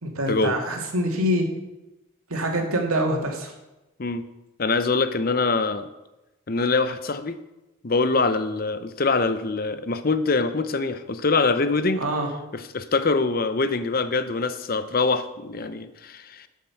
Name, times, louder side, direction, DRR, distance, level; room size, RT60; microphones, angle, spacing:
voice 1, 0.0-1.5 2.3-3.5 12.0-12.3, equal, 85° right, 2 dB, 2.4 m, -25 dB
voice 2, 4.6-5.9 6.5-7.4 7.8-12.0 12.5-16.5, left 3 dB, 45° left, 12 dB, 0.7 m, -24 dB
12.0 x 7.3 x 5.8 m, 1.0 s
head